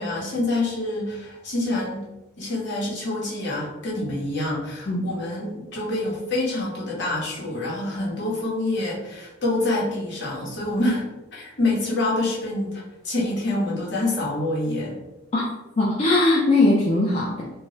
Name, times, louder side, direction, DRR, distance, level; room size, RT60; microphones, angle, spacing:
voice 1, 0.0-2.1 2.4-11.0 11.3-15.0, left 2 dB, 60° left, -5 dB, 0.9 m, -26 dB
voice 2, 15.8-17.5, left 2 dB, 30° left, -4 dB, 0.4 m, -20 dB
2.3 x 2.0 x 3.7 m, 1.0 s
head